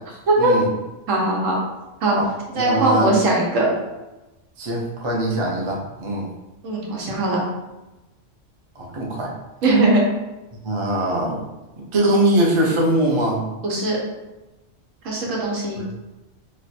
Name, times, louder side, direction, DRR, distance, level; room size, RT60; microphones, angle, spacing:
voice 1, 0.4-0.7 2.1-2.2 2.5-3.1 4.6-6.3 8.8-9.3 10.6-11.4 11.8-13.4 15.8-15.9, right 1 dB, 35° right, -2 dB, 0.5 m, -22 dB
voice 2, 1.1-1.5 2.0-2.2 2.5-3.7 6.6-7.4 9.6-10.0 13.6-14.0 15.0-15.8, right 2 dB, 90° right, -3 dB, 1.3 m, -20 dB
3.2 x 2.3 x 4.0 m, 1.1 s
omnidirectional pair, 1.3 m